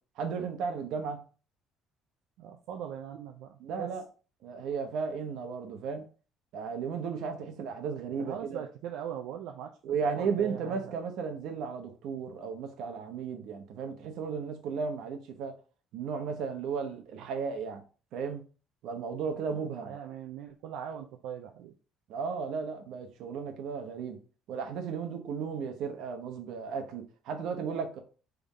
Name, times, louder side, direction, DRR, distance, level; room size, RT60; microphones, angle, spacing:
voice 1, 0.2-1.2 3.6-4.0 4.4-6.1 6.5-8.6 9.8-15.5 15.9-17.8 18.1-18.4 18.8-19.9 22.1-24.2 24.5-28.0, right 6 dB, 70° right, 1.0 m, -34 dB
voice 2, 2.4-3.9 8.1-10.9 19.4-21.7, right 9 dB, 90° right, 0.5 m, -41 dB
3.8 x 3.4 x 4.0 m
cardioid pair, 150°, 0 cm